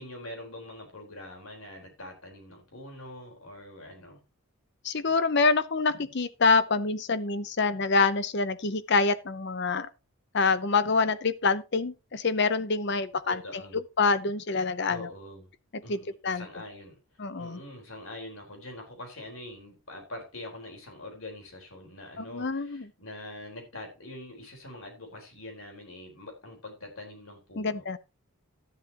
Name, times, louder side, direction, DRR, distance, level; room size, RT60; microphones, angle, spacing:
voice 1, 0.0-4.2 13.3-13.8 14.9-15.5 15.8-17.0 17.4-27.8, left 1 dB, 70° left, 4.3 m, -44 dB
voice 2, 4.8-9.9 10.3-15.1 15.9-16.4 17.2-17.6 22.2-22.9 27.6-28.0, left 4 dB, 50° left, 0.7 m, -26 dB
12.5 x 11.0 x 3.0 m
head